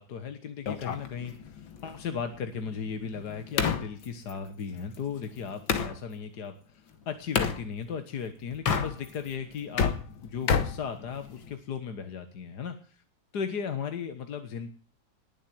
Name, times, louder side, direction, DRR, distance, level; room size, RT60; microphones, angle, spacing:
voice 1, 0.0-10.0 10.2-13.0 13.3-14.7, left 6 dB, 60° left, 8 dB, 1.8 m, -36 dB
sound 1, 0.7-6.0 7.3-7.6 8.5-9.3 9.6-11.6, left 6 dB, 80° left, 2.4 m, -31 dB
20.5 x 7.5 x 9.4 m, 0.42 s
omnidirectional pair, 2.1 m